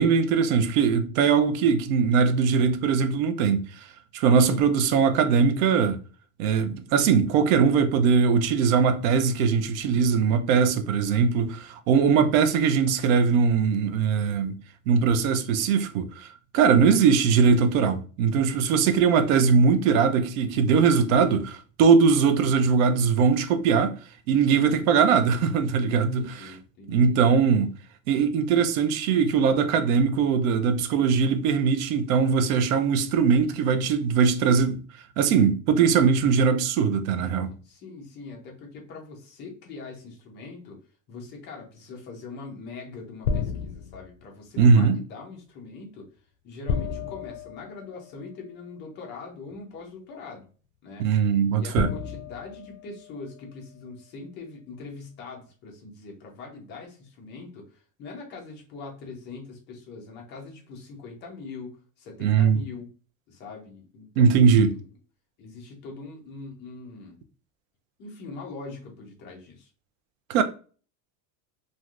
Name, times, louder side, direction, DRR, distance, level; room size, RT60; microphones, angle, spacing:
voice 1, 0.0-3.9 4.1-6.0 6.4-14.6 14.9-24.0 24.3-26.5 26.9-27.7 28.1-34.8 35.2-37.5 44.6-45.0 51.0-51.9 62.2-62.6 64.2-64.7 70.3-70.4, right 6 dB, 70° right, 0.5 m, -21 dB
voice 2, 18.7-19.0 24.5-24.8 26.1-27.2 37.6-40.8 41.1-46.1 46.4-50.5 50.8-62.9 63.3-64.8 65.4-67.2 68.0-69.7, left 4 dB, 25° left, 0.5 m, -42 dB
sound 1, 43.2-44.2 46.7-48.3 49.5-49.6 51.7-53.5, left 6 dB, 70° left, 0.6 m, -32 dB
3.2 x 2.5 x 2.4 m
supercardioid pair, 175°, 43 cm